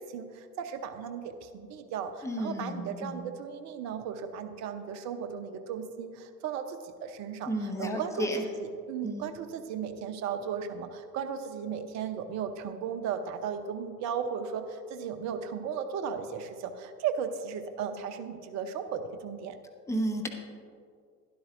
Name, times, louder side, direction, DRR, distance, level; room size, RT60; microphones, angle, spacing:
voice 1, 0.0-8.3 8.6-19.6, right 7 dB, 35° right, 8 dB, 0.8 m, -36 dB
voice 2, 2.2-3.2 7.5-8.4 9.0-9.3 19.9-20.3, equal, 5° left, 2 dB, 1.0 m, -32 dB
12.0 x 11.0 x 2.6 m, 2.2 s
figure-of-eight pair, 80°, 47 cm